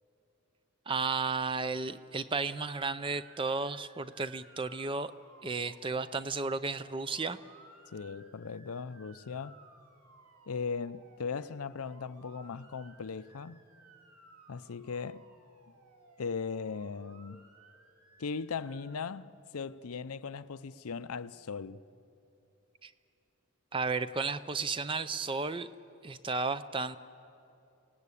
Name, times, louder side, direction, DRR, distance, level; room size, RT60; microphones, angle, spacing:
voice 1, 0.9-5.1 5.4-7.4 22.8-22.9 23.7-25.7 26.0-27.0, right 4 dB, 20° right, 0.5 m, -33 dB
Motor vehicle (road) / Siren, 2.8-19.0, right 2 dB, 90° right, 2.5 m, -59 dB
voice 2, 7.9-9.6 10.5-13.6 14.5-15.2 16.2-17.4 18.2-21.8, left 5 dB, 80° left, 0.6 m, -38 dB
28.5 x 18.0 x 8.5 m
head